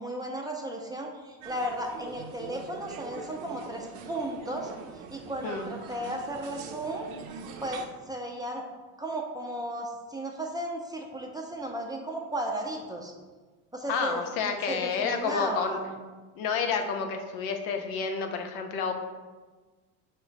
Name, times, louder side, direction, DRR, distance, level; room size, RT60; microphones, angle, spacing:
voice 1, 0.0-4.7 4.9-7.1 7.6-8.6 9.0-13.1 13.7-15.9, right 1 dB, 10° right, 0 dB, 0.4 m, -35 dB
sound 1, 1.4-7.9, right 6 dB, 65° right, 0.5 m, -43 dB
voice 2, 13.9-15.8 16.4-18.9, left 5 dB, 85° left, 5 dB, 0.6 m, -30 dB
4.8 x 2.2 x 3.9 m, 1.3 s
supercardioid pair, 90°, 40 cm